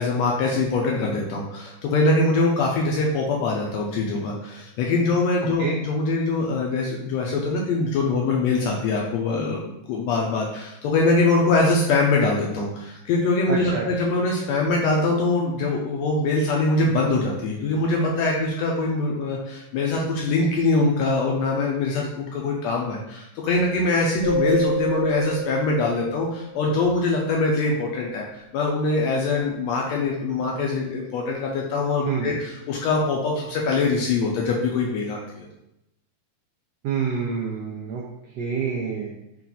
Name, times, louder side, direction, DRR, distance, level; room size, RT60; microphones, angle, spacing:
voice 1, 0.0-35.5, left 3 dB, 80° left, -1 dB, 1.6 m, -23 dB
voice 2, 13.5-13.8 32.0-32.3 36.8-38.0 38.4-39.1, right 6 dB, 85° right, -2 dB, 1.4 m, -27 dB
sound 1, 24.2-26.9, right 1 dB, 40° right, 1.1 m, -28 dB
5.7 x 2.4 x 3.9 m, 0.86 s
omnidirectional pair, 3.5 m